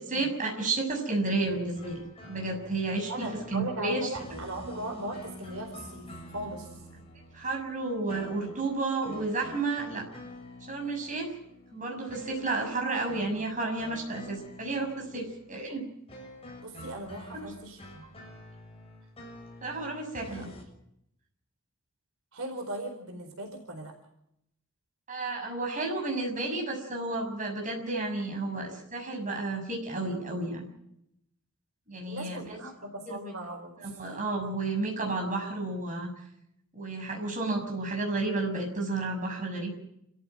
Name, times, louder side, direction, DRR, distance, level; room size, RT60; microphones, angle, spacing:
voice 1, 0.0-4.0 7.3-10.0 10.7-11.3 11.7-15.9 19.6-20.5 25.1-30.7 31.9-32.4 33.1-33.2 33.8-36.1 36.7-39.7, right 3 dB, 40° right, 1 dB, 6.7 m, -32 dB
sound 1, 1.5-20.6, left 1 dB, 30° left, 7.2 m, -48 dB
voice 2, 3.1-6.8 16.6-18.0 22.3-23.9 32.1-34.2, right 1 dB, 70° right, 4 dB, 4.5 m, -38 dB
29.0 x 14.5 x 7.7 m, 0.78 s
head